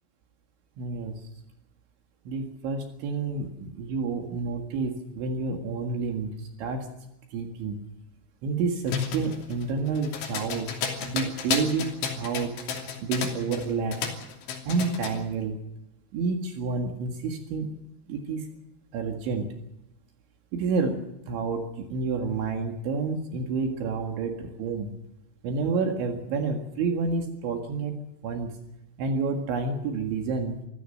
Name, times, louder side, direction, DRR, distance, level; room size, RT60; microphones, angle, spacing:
voice 1, 0.8-1.2 2.3-6.9 7.3-7.8 8.4-12.6 13.0-14.0 14.7-15.6 16.1-17.7 18.1-18.5 18.9-19.5 20.5-24.9 25.4-27.9 28.2-28.5 29.0-30.6, right 4 dB, 70° right, 3 dB, 4.1 m, -29 dB
sound 1, 8.9-13.7 13.9-15.2, left 6 dB, 70° left, 5.3 m, -31 dB
26.0 x 16.0 x 6.5 m, 0.89 s
omnidirectional pair, 5.8 m